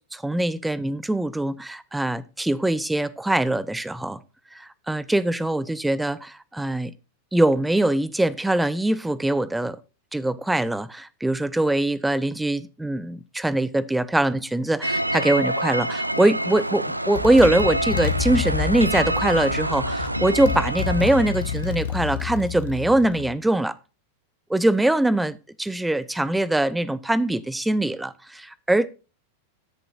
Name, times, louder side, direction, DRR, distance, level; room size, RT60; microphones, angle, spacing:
voice 1, 0.1-4.2 4.5-6.9 7.3-9.8 10.1-23.8 24.5-28.9, right 1 dB, 5° right, 0.6 m, -22 dB
sound 1, 14.8-21.9, right 1 dB, 85° right, 0.5 m, -27 dB
Motorcycle, 16.6-16.7 17.1-23.3, left 8 dB, 55° left, 1.2 m, -29 dB
16.5 x 6.9 x 2.5 m
figure-of-eight pair, 90°, 0 cm